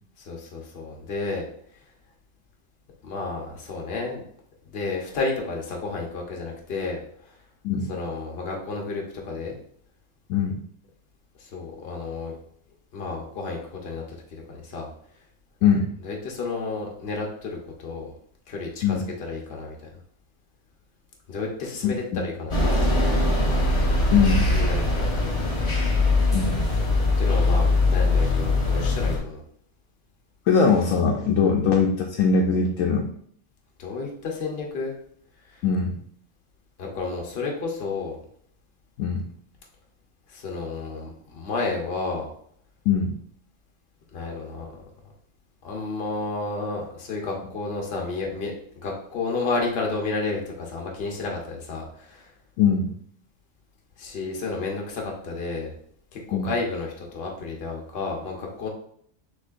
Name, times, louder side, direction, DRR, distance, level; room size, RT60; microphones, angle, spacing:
voice 1, 0.2-1.4 3.0-4.2 4.7-7.3 7.9-9.6 11.4-12.3 12.9-14.0 14.3-14.9 16.0-18.1 18.5-19.9 21.3-23.2 24.5-25.7 26.6-26.8 27.2-29.4 31.4-31.5 33.8-34.9 35.5-35.6 36.8-38.2 40.3-42.3 44.1-44.8 45.6-52.3 54.0-55.7 56.1-58.7, left 3 dB, 55° left, 0 dB, 1.1 m, -31 dB
voice 2, 15.6-15.9 18.8-19.0 21.8-22.2 24.1-24.5 26.3-26.6 30.5-33.1 35.6-35.9 39.0-39.2 42.9-43.2 52.6-52.9 56.3-56.5, left 6 dB, 85° left, 1 dB, 1.0 m, -21 dB
sound 1, 22.5-29.2, left 2 dB, 25° left, 1.1 m, -21 dB
6.2 x 3.1 x 2.5 m, 0.64 s
omnidirectional pair, 1.3 m